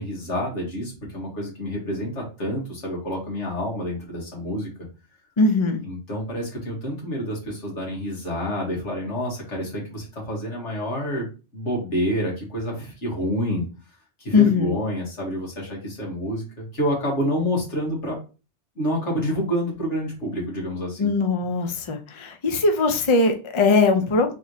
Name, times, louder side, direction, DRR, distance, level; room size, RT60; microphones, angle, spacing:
voice 1, 0.0-4.7 5.8-13.7 14.2-18.2 18.8-21.1, equal, 85° left, 2.3 m, -28 dB
voice 2, 5.4-5.8 14.3-14.8 21.0-24.3, left 3 dB, 30° left, 0.6 m, -20 dB
4.1 x 3.2 x 4.0 m
omnidirectional pair, 1.2 m